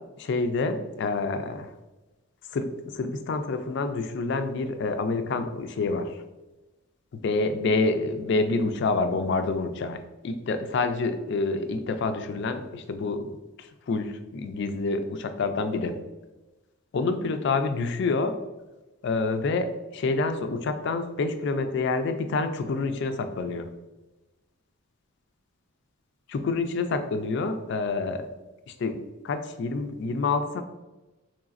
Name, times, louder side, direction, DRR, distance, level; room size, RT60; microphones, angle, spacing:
voice 1, 0.2-1.7 2.5-6.1 7.1-13.2 13.6-16.0 16.9-18.4 19.0-23.7 26.3-28.3 28.8-29.0 29.2-30.6, left 3 dB, 55° left, 8 dB, 0.3 m, -27 dB
3.9 x 3.2 x 2.4 m, 1.1 s
head